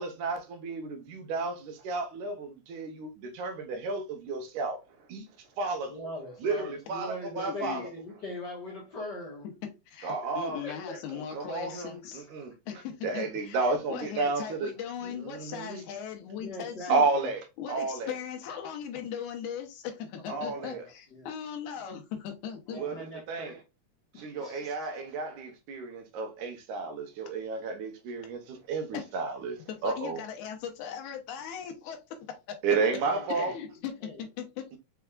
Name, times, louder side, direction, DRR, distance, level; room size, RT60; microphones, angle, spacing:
voice 1, 0.0-4.8 5.1-5.3 5.6-5.9 6.4-7.8 10.0-10.6 11.3-12.5 13.0-14.7 15.0-15.8 16.9-18.2 20.3-20.8 22.7-23.6 24.2-30.2 32.6-33.6, right 4 dB, 85° right, 2.4 m, -32 dB
voice 2, 5.9-9.5 10.2-11.2 16.4-17.3 20.2-21.3 22.7-23.6 24.1-24.9 33.0-33.5 34.0-34.2, left 1 dB, 50° left, 1.4 m, -42 dB
voice 3, 7.4-7.9 9.9-12.3 12.7-17.1 17.6-22.8 28.9-29.1 29.7-32.6 33.3-34.6, left 8 dB, 80° left, 2.3 m, -39 dB
6.1 x 3.4 x 2.3 m
omnidirectional pair, 3.4 m